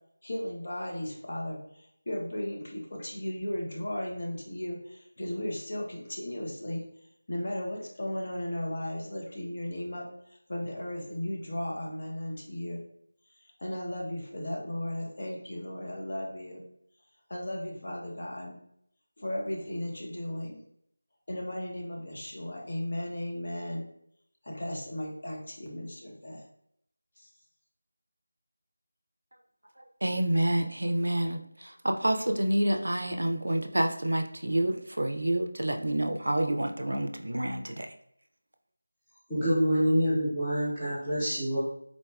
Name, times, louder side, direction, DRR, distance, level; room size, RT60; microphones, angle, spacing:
voice 1, 0.2-6.8 7.3-10.1 10.5-12.8 13.4-16.6 17.3-18.6 19.2-20.6 21.3-23.9 24.4-26.4 27.2-27.3, left 1 dB, 45° left, -1 dB, 0.7 m, -35 dB
voice 2, 30.0-37.9, right 1 dB, 85° right, 5 dB, 0.4 m, -28 dB
voice 3, 39.3-41.6, equal, 10° left, -17 dB, 0.7 m, -26 dB
3.9 x 2.3 x 2.3 m, 0.71 s
figure-of-eight pair, 175°, 0 cm